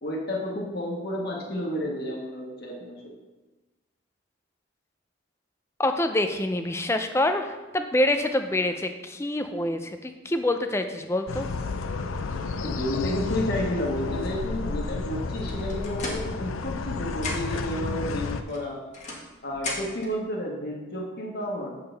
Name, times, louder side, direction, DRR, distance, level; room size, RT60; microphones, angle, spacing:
voice 1, 0.0-3.0 12.6-18.8 19.4-21.8, left 1 dB, 50° left, -2 dB, 1.6 m, -31 dB
voice 2, 5.8-11.5, left 1 dB, 15° left, 7 dB, 0.5 m, -26 dB
sound 1, 11.3-18.4, left 3 dB, 90° left, 0.6 m, -31 dB
sound 2, 15.5-16.8 17.1-17.7 18.5-20.1, left 2 dB, 35° left, 1.3 m, -36 dB
8.8 x 7.5 x 3.4 m, 1.2 s
head